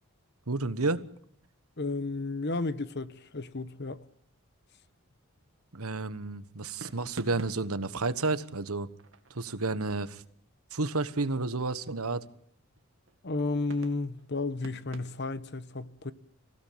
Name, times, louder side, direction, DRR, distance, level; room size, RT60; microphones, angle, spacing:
voice 1, 0.5-1.0 5.7-8.9 9.3-10.2 10.7-12.2, right 3 dB, 80° right, 1.3 m, -31 dB
voice 2, 1.8-4.0 13.2-16.1, left 3 dB, 50° left, 1.1 m, -33 dB
sound 1, 4.7-5.3 6.8-10.1 11.9-12.4 12.8-13.3 13.7-15.4, right 2 dB, 60° right, 2.1 m, -49 dB
26.5 x 16.5 x 8.7 m
head